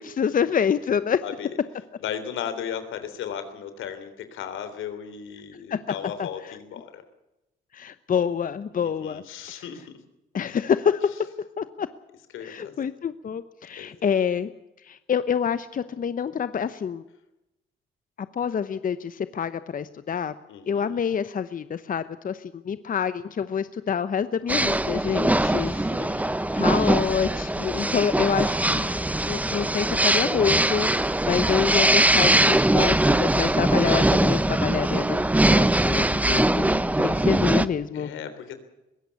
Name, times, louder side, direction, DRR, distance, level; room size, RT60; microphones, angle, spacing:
voice 1, 0.0-1.2 5.7-5.8 6.2-6.6 7.7-9.2 9.5-9.6 10.3-11.0 11.6-11.9 12.4-14.5 14.8-17.0 18.2-20.3 20.7-28.9 29.3-38.1, left 7 dB, 45° left, 13 dB, 0.9 m, -27 dB
voice 2, 1.2-1.5 2.0-7.0 8.8-9.8 12.3-12.8 13.8-13.9 20.5-21.1 25.4-26.3 37.9-38.6, left 8 dB, 85° left, 10 dB, 3.4 m, -36 dB
sound 1, 24.5-37.7, right 1 dB, 5° right, 1.0 m, -22 dB
21.5 x 16.5 x 8.3 m, 0.93 s
cardioid pair, 90°, 20 cm